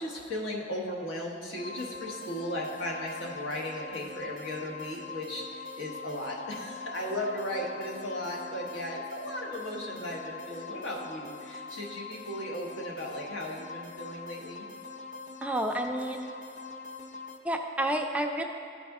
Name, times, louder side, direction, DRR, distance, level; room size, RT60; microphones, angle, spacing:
voice 1, 0.0-14.7, left 1 dB, 90° left, -1 dB, 1.1 m, -36 dB
sound 1, 1.6-17.4, left 4 dB, 40° left, 0.5 m, -43 dB
voice 2, 15.4-16.3 17.4-18.4, right 1 dB, 10° right, 3 dB, 0.3 m, -30 dB
12.5 x 4.2 x 3.5 m, 2.3 s
head